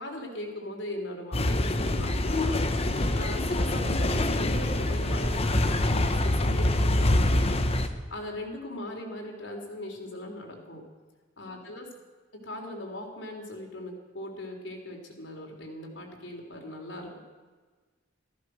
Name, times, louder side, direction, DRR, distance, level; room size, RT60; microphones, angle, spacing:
voice 1, 0.0-2.6 3.1-7.6 8.1-10.8 11.4-11.9 12.4-17.2, left 1 dB, 75° left, 2 dB, 3.6 m, -39 dB
sound 1, 1.3-7.9, left 1 dB, 35° left, 1.0 m, -25 dB
sound 2, 2.3-7.9, right 1 dB, 35° right, 2.2 m, -42 dB
14.5 x 14.5 x 6.4 m, 1.4 s
head